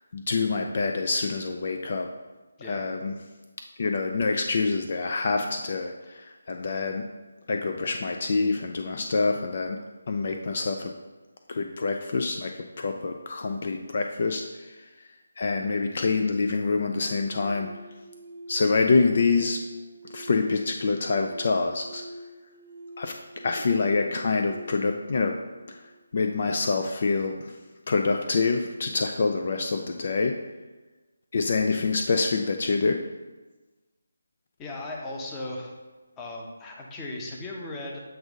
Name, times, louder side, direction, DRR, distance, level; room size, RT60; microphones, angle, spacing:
voice 1, 0.1-2.1 2.6-3.2 3.8-7.0 7.5-9.8 10.1-10.9 11.5-14.8 15.4-17.7 18.5-19.6 20.1-22.0 23.0-23.1 23.4-25.4 25.7-25.8 26.1-27.6 27.9-30.4 31.3-33.0, left 4 dB, 50° left, 4 dB, 0.4 m, -26 dB
sound 1, 15.9-26.9, right 1 dB, 45° right, 0.5 m, -47 dB
voice 2, 34.6-35.7 36.2-38.0, left 2 dB, 15° left, -1 dB, 0.8 m, -37 dB
7.8 x 2.6 x 5.1 m, 1.2 s
figure-of-eight pair, 160°, 0 cm